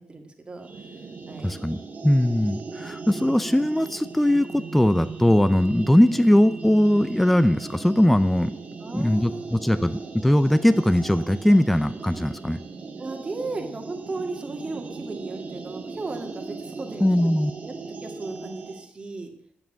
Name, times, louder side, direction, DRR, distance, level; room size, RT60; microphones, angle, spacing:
voice 1, 0.1-0.9 1.3-1.5 5.9-6.3 8.8-10.1 13.0-17.3 17.6-19.3, right 3 dB, 25° right, 3 dB, 1.9 m, -36 dB
sound 1, 0.6-18.9, right 4 dB, 45° right, 1.6 m, -38 dB
voice 2, 1.4-8.5 8.9-12.6 17.0-17.5, left 1 dB, 5° left, 13 dB, 0.5 m, -20 dB
9.8 x 8.1 x 8.8 m, 0.68 s
wide cardioid pair, 145°, 4 cm